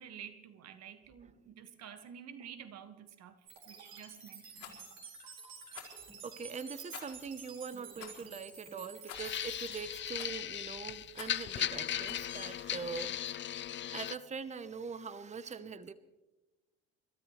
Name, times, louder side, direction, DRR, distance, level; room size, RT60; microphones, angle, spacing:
voice 1, 0.0-3.4 3.7-4.7, right 9 dB, 55° right, 1.8 m, -50 dB
sound 1, 3.5-9.8, right 5 dB, 75° right, 5.3 m, -51 dB
Rattle, 4.5-4.8 5.7-6.0 6.9-7.2 8.0-8.2 9.1-9.4 10.2-10.5 11.1-11.5 12.0-12.3, left 10 dB, 70° left, 4.5 m, -49 dB
voice 2, 6.2-13.3 13.9-15.9, right 5 dB, 20° right, 0.9 m, -42 dB
sound 2, 9.1-14.1, left 10 dB, 35° left, 0.6 m, -37 dB
30.0 x 13.5 x 3.3 m
hypercardioid pair, 65°, 31 cm